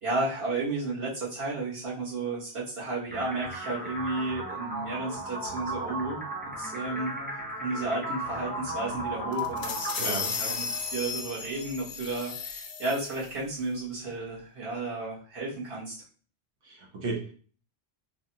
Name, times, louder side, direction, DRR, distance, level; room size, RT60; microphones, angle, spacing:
voice 1, 0.0-6.2 6.6-7.1 7.5-15.9, right 2 dB, 65° right, -6 dB, 1.4 m, -33 dB
sound 1, 3.1-11.1, equal, 15° right, 0.4 m, -36 dB
sound 2, 9.3-13.3, left 5 dB, 55° left, 0.5 m, -35 dB
voice 2, 10.0-10.3 16.7-17.4, right 3 dB, 80° right, -2 dB, 1.2 m, -34 dB
3.3 x 2.3 x 2.7 m, 0.41 s
omnidirectional pair, 1.1 m